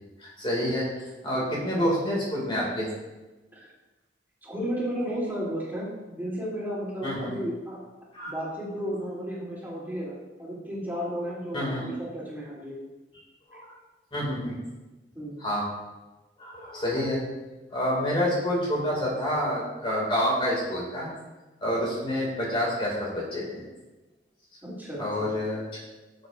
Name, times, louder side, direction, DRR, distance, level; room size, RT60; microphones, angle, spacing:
voice 1, 0.2-0.8 1.2-2.9 7.0-7.3 8.1-8.3 11.5-11.8 13.5-13.7 14.1-14.5 15.4-15.7 16.4-17.2 17.7-21.1 21.6-23.6 25.0-25.7, equal, 30° left, -4 dB, 2.2 m, -28 dB
voice 2, 4.4-7.8 8.2-12.7 13.5-13.6 15.1-15.4 24.6-25.3, equal, 10° right, -7 dB, 2.9 m, -33 dB
13.5 x 7.8 x 2.5 m, 1.1 s
head